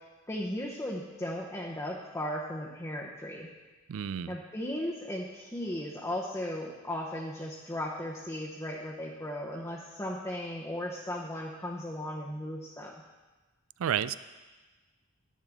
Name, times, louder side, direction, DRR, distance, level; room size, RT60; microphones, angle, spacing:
voice 1, 0.3-3.5 4.3-12.9, left 1 dB, 15° left, -3 dB, 0.8 m, -36 dB
voice 2, 3.9-4.4 13.8-14.1, right 9 dB, 75° right, 16 dB, 0.3 m, -30 dB
10.5 x 10.0 x 3.5 m, 1.2 s
head